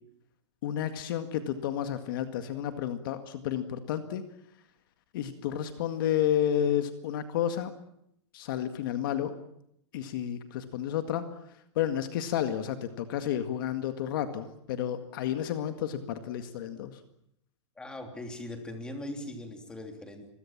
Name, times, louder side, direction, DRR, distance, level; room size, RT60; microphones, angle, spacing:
voice 1, 0.6-4.2 5.1-7.7 8.3-9.3 9.9-11.2 11.8-17.0, left 10 dB, 45° left, 8 dB, 2.0 m, -31 dB
voice 2, 17.8-20.3, left 1 dB, 5° left, 4 dB, 3.1 m, -40 dB
29.5 x 22.5 x 7.4 m, 0.76 s
supercardioid pair, 175°, 15 cm